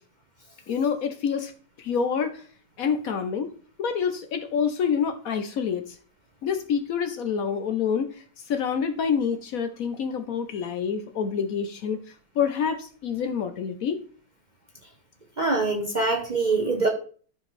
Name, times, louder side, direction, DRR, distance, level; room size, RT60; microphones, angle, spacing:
voice 1, 0.7-1.5 1.8-2.4 2.8-3.5 3.8-6.0 6.4-12.0 12.3-14.0, left 6 dB, 65° left, 8 dB, 1.1 m, -27 dB
voice 2, 15.4-16.9, right 3 dB, 35° right, 2 dB, 0.9 m, -24 dB
13.0 x 4.6 x 3.2 m, 0.43 s
omnidirectional pair, 1.8 m